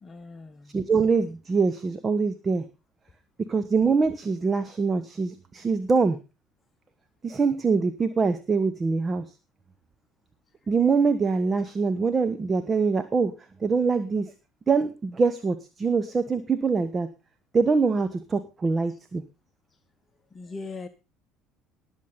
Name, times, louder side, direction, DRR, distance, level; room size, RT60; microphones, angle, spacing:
voice 1, 0.0-0.8 20.3-20.9, left 3 dB, 25° left, 10 dB, 1.1 m, -39 dB
voice 2, 0.7-2.6 3.4-6.2 7.2-9.2 10.7-13.3 13.6-14.3 14.7-17.1 17.5-19.2, right 4 dB, 25° right, 11 dB, 1.2 m, -24 dB
19.5 x 7.4 x 4.0 m, 0.30 s
figure-of-eight pair, 60°, 0 cm